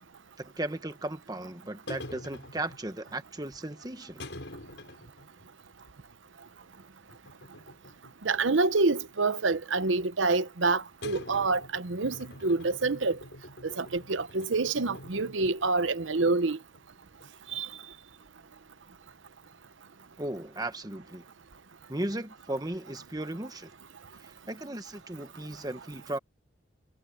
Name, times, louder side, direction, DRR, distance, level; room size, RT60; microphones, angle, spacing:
voice 1, 0.4-4.2 20.2-21.2 21.9-23.7 24.2-26.2, right 1 dB, 20° right, 1.3 m, -36 dB
sound 1, 1.9-3.2 4.2-5.5 5.8-5.9 7.1-8.4 8.6-9.5 11.0-16.3 16.7-16.8 17.2-17.8, left 1 dB, 65° left, 6.4 m, -46 dB
voice 2, 8.2-12.1 12.4-13.2 13.8-16.6 17.5-17.7, right 3 dB, 80° right, 0.9 m, -27 dB
head